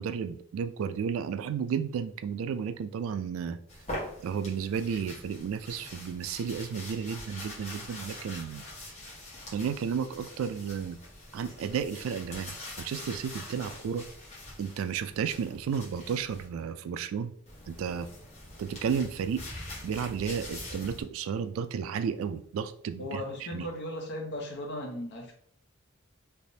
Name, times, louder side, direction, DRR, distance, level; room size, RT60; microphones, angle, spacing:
voice 1, 0.0-3.6 4.2-8.7 9.5-11.0 11.3-14.0 14.6-17.3 17.7-18.1 18.6-19.4 19.8-23.7, right 7 dB, 85° right, 12 dB, 0.3 m, -33 dB
sound 1, 3.7-16.5 17.5-21.0, left 1 dB, 35° left, 1.1 m, -44 dB
voice 2, 23.0-25.3, left 1 dB, 55° left, 2 dB, 0.8 m, -37 dB
3.4 x 2.9 x 2.7 m, 0.63 s
head